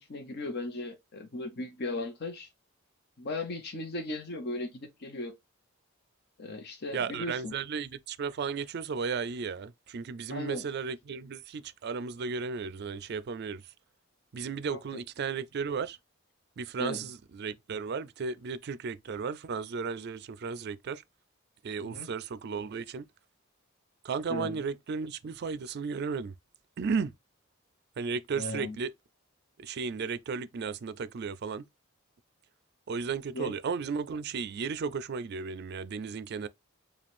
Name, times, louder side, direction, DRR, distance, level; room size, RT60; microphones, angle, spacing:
voice 1, 0.0-2.5 3.2-5.3 6.4-7.5 10.3-10.6 14.7-14.8 16.8-17.1 21.8-22.1 24.3-24.6 28.3-28.8 33.3-33.6, left 2 dB, 50° left, 0.8 m, -37 dB
voice 2, 6.9-13.6 14.3-16.0 16.6-21.0 21.6-23.1 24.0-26.3 26.8-27.1 28.0-28.9 29.6-31.6 32.9-36.5, right 5 dB, 50° right, 0.4 m, -34 dB
5.0 x 2.3 x 3.5 m
head